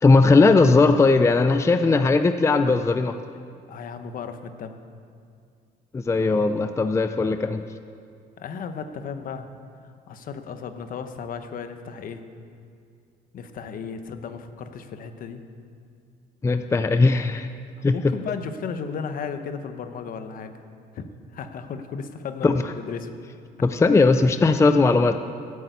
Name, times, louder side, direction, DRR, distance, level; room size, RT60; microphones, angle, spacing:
voice 1, 0.0-3.2 5.9-7.6 16.4-17.5 17.8-18.1 22.4-22.5 23.6-25.2, left 3 dB, 15° left, 8 dB, 0.5 m, -18 dB
voice 2, 3.7-4.8 8.4-9.5 9.8-12.2 13.3-15.4 17.9-20.5 20.9-21.1 21.3-23.1, left 6 dB, 55° left, 8 dB, 1.1 m, -34 dB
13.0 x 8.6 x 8.2 m, 2.3 s
cardioid pair, 110°, 17 cm